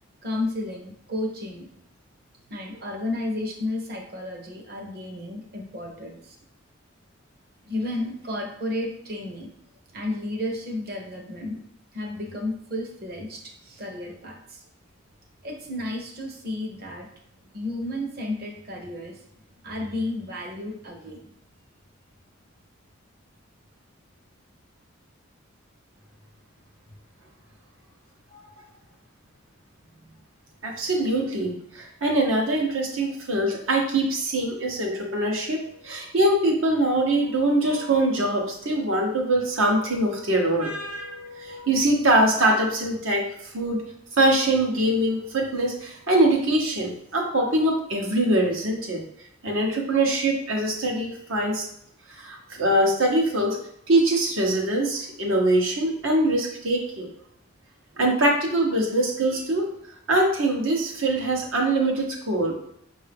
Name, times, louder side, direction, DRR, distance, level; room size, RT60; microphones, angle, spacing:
voice 1, 0.2-1.7 2.5-6.4 7.6-9.5 9.9-11.6 11.9-14.6 15.4-17.1 17.5-19.2 19.6-21.2, left 1 dB, 50° right, 2 dB, 0.9 m, -32 dB
voice 2, 30.6-43.2 43.5-43.8 44.2-49.0 49.4-51.6 52.2-53.6 53.9-57.1 58.0-59.7 60.1-62.5, right 1 dB, 85° right, 0 dB, 1.1 m, -23 dB
5.6 x 2.7 x 3.5 m, 0.71 s
head